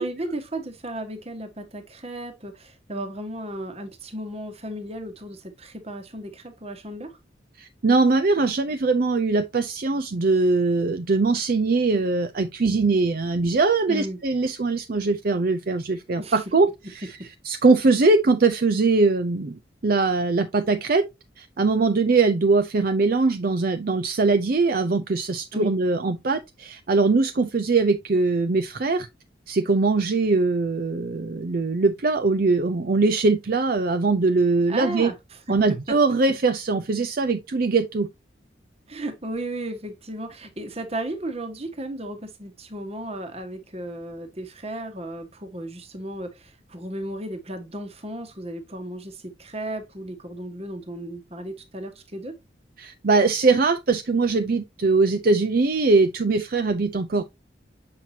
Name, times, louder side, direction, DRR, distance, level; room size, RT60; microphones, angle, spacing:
voice 1, 0.0-7.2 13.9-14.2 16.2-16.4 25.5-25.7 34.7-35.1 35.9-36.0 38.9-52.3, right 1 dB, 30° right, 1.3 m, -34 dB
voice 2, 7.6-16.7 16.9-17.1 17.4-21.0 21.4-29.1 29.5-35.1 35.5-38.1 52.8-57.2, right 3 dB, 50° right, 0.5 m, -21 dB
7.5 x 5.8 x 2.8 m
head